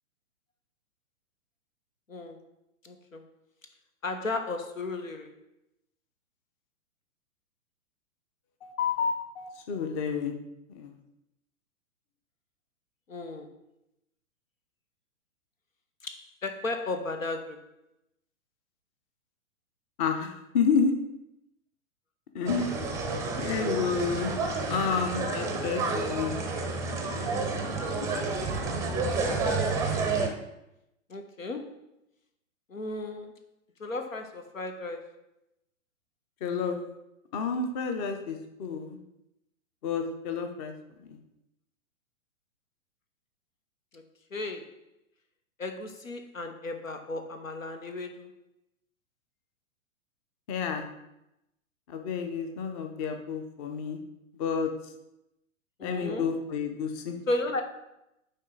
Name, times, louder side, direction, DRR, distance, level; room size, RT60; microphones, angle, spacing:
voice 1, 2.1-2.4 2.8-3.2 4.0-5.3 13.1-13.5 16.0-17.6 31.1-31.7 32.7-33.3 33.8-35.1 43.9-44.0 44.3-44.7 45.6-48.3 55.8-56.3 57.3-57.6, left 2 dB, 85° left, 7 dB, 1.0 m, -34 dB
voice 2, 8.6-10.4 10.7-10.9 20.0-20.9 22.3-22.7 23.4-24.4 24.7-26.4 36.4-36.8 37.3-39.0 39.8-40.7 41.1-41.2 50.5-50.9 51.9-54.0 54.4-54.7 55.8-57.2, left 6 dB, 30° left, 6 dB, 0.7 m, -30 dB
sound 1, 22.5-30.3, right 3 dB, 10° right, 0.6 m, -30 dB
9.2 x 3.4 x 3.9 m, 0.87 s
figure-of-eight pair, 115°, 39 cm